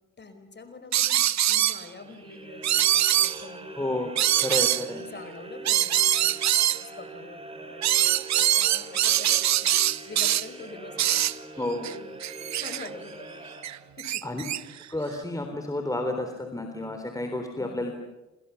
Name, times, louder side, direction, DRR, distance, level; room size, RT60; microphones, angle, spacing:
voice 1, 0.2-4.6 4.9-6.7 6.9-11.2 11.8-13.5 14.0-14.4 17.6-17.9, left 4 dB, 35° left, 9 dB, 4.9 m, -46 dB
sound 1, 0.9-1.8 2.6-3.4 4.2-4.9 5.6-6.8 7.8-10.5 11.0-11.4 11.8-11.9 12.2-12.9 13.6-14.6, right 12 dB, 65° right, 0.9 m, -23 dB
sound 2, 2.0-14.2, right 2 dB, 20° right, 5.9 m, -43 dB
voice 2, 3.8-5.0 11.6-11.9 14.2-14.4 14.9-17.9, left 1 dB, 10° left, 5 dB, 3.7 m, -31 dB
29.0 x 27.0 x 7.1 m, 1.0 s
cardioid pair, 90°, 30 cm